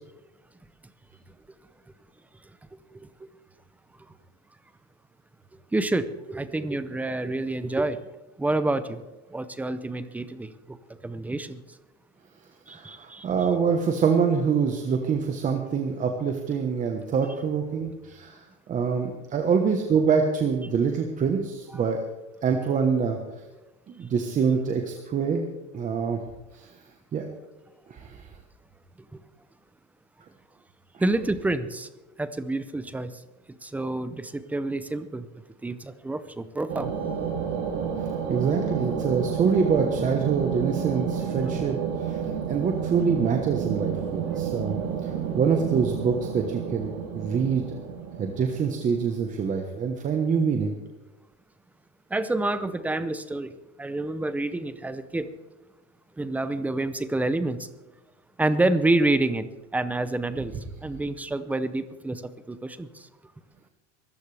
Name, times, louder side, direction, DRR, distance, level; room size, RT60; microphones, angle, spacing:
voice 1, 2.9-3.3 5.7-8.0 8.4-9.0 9.3-10.8 11.0-11.6 12.7-13.3 21.8-21.9 31.0-31.9 32.2-33.1 33.6-35.3 35.6-36.9 52.1-53.5 53.8-55.3 56.2-57.7 58.4-59.5 59.7-60.5 60.8-62.2 62.5-63.1, right 2 dB, 5° right, 12 dB, 0.5 m, -28 dB
voice 2, 12.7-22.0 22.4-23.2 23.9-25.4 25.7-26.2 26.5-26.7 27.1-27.2 27.9-28.3 38.0-42.2 42.5-44.7 45.0-47.8 48.2-50.7, right 6 dB, 20° right, 3 dB, 1.1 m, -25 dB
sound 1, 36.7-49.2, right 7 dB, 65° right, 3.0 m, -30 dB
23.0 x 14.0 x 3.4 m, 1.1 s
supercardioid pair, 155°, 34 cm